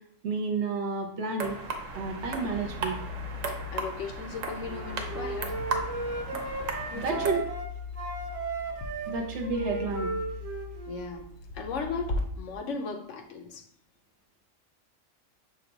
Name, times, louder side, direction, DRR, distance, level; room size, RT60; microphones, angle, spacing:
voice 1, 0.2-1.6 1.9-3.0 6.9-7.4 9.1-10.1, right 4 dB, 65° right, 1.0 m, -30 dB
sound 1, 1.4-7.3, right 4 dB, 90° right, 1.1 m, -36 dB
sound 2, 1.6-12.2, left 4 dB, 55° left, 0.5 m, -40 dB
voice 2, 3.5-5.6 6.3-6.5 6.9-7.3 10.9-11.3 11.5-13.7, left 5 dB, 75° left, 0.9 m, -37 dB
Wind instrument woodwind instrument, 4.6-7.7 7.9-11.3, right 3 dB, 30° right, 0.9 m, -35 dB
5.9 x 2.3 x 3.9 m
omnidirectional pair, 1.3 m